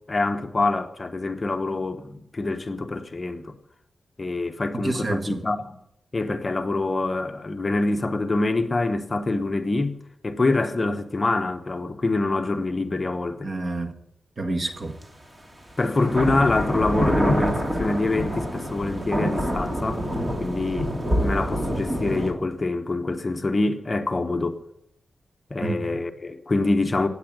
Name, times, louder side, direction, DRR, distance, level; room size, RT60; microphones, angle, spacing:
voice 1, 0.1-3.5 4.2-5.7 6.1-13.5 15.8-20.1 20.4-20.9 21.2-24.6 25.5-27.1, left 2 dB, 30° left, 1.0 m, -25 dB
voice 2, 4.7-5.4 13.4-13.9 14.4-15.0 25.6-26.0, right 2 dB, 45° right, 1.6 m, -28 dB
sound 1, 15.0-15.1 15.9-22.3, equal, 20° right, 2.9 m, -26 dB
17.0 x 9.0 x 8.9 m
wide cardioid pair, 125°, 0 cm